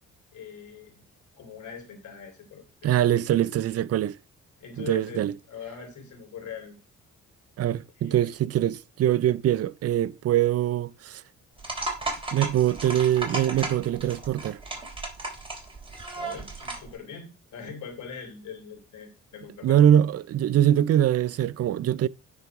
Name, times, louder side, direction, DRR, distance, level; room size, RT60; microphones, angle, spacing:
voice 1, 0.3-1.0 1.4-3.1 4.6-6.8 8.0-8.3 16.1-19.8, left 6 dB, 75° left, 3.7 m, -42 dB
voice 2, 2.8-4.2 4.8-5.3 7.6-11.2 12.3-14.6 19.6-22.1, right 11 dB, 55° right, 0.5 m, -23 dB
sound 1, 11.6-16.9, right 2 dB, 15° right, 3.7 m, -35 dB
9.9 x 4.7 x 4.8 m
cardioid pair, 90°, 30 cm